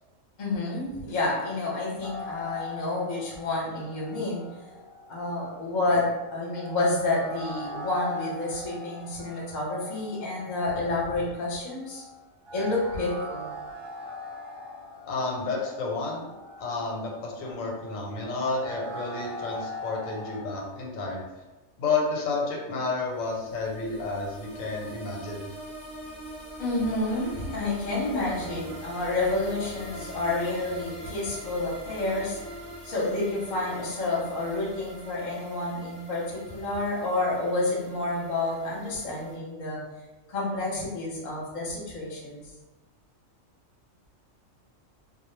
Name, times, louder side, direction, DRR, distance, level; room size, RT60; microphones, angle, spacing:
voice 1, 0.4-4.4 5.1-12.0 12.5-13.5 26.6-32.4 32.8-39.8 40.3-42.4, left 2 dB, 40° left, -4 dB, 0.7 m, -29 dB
sound 1, 2.0-20.4, left 1 dB, 65° right, 0.5 m, -41 dB
voice 2, 15.1-16.3 16.6-21.2 21.8-25.5, left 3 dB, 90° left, -1 dB, 1.0 m, -31 dB
sound 2, 23.1-39.4, right 1 dB, ahead, 0.7 m, -43 dB
2.2 x 2.1 x 3.1 m, 1.1 s
omnidirectional pair, 1.4 m